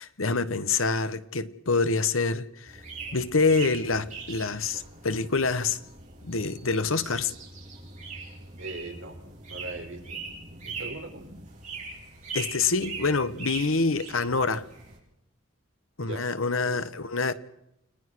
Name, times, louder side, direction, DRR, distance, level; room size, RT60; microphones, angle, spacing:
voice 1, 0.0-2.8 3.1-5.8 6.2-7.3 12.3-14.6 16.0-17.3, left 4 dB, 80° left, 1.3 m, -26 dB
sound 1, 2.7-15.0, right 4 dB, 35° right, 6.9 m, -41 dB
voice 2, 8.6-9.2 9.4-10.0 10.5-11.2 16.0-16.3 16.6-16.8, right 2 dB, 65° right, 4.6 m, -39 dB
29.5 x 19.0 x 6.3 m
head